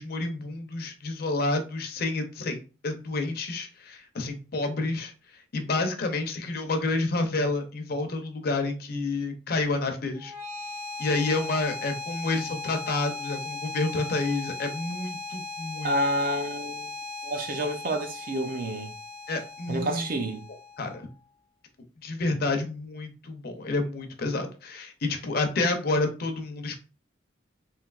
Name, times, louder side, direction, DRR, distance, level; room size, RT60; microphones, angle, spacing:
voice 1, 0.0-2.6 2.8-5.1 5.5-10.3 11.0-15.9 19.3-20.1 20.8-21.0 22.0-26.8, left 3 dB, 50° left, 0.6 m, -29 dB
sound 1, 10.1-21.2, left 3 dB, 75° right, 1.6 m, -38 dB
voice 2, 15.8-16.9 17.2-18.9 19.7-20.4, right 1 dB, 45° right, 0.5 m, -29 dB
3.2 x 2.7 x 2.4 m
head